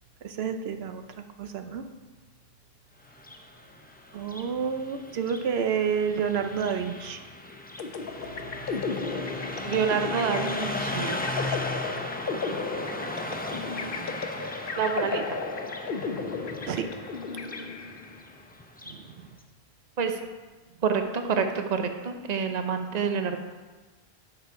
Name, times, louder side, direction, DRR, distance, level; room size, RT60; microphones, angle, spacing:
voice 1, 0.2-1.8 4.1-7.2 16.7-16.9 18.9-19.3, right 7 dB, 80° right, 7 dB, 0.9 m, -30 dB
Car passing by, 3.1-19.1, left 1 dB, 10° left, 0.5 m, -37 dB
sound 1, 7.8-18.2, left 4 dB, 65° left, 0.9 m, -34 dB
voice 2, 9.6-11.2 11.5-11.6 14.8-15.2 20.0-20.2 20.8-23.4, right 6 dB, 45° right, 6 dB, 0.8 m, -27 dB
9.8 x 6.7 x 4.6 m, 1.3 s
omnidirectional pair, 1.0 m